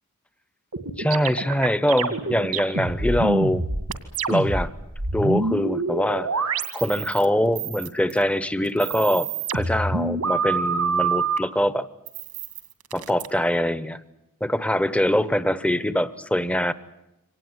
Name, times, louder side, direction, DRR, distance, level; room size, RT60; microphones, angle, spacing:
sound 1, 0.7-4.7 4.9-7.3 7.6-8.2 8.7-11.4 12.1-13.3, right 4 dB, 85° right, 2.2 m, -26 dB
voice 1, 1.0-3.6 4.3-4.7 5.1-6.3 6.7-11.9 12.9-14.0 14.4-16.7, equal, 5° left, 15 dB, 0.8 m, -23 dB
25.0 x 19.0 x 9.6 m, 0.91 s
head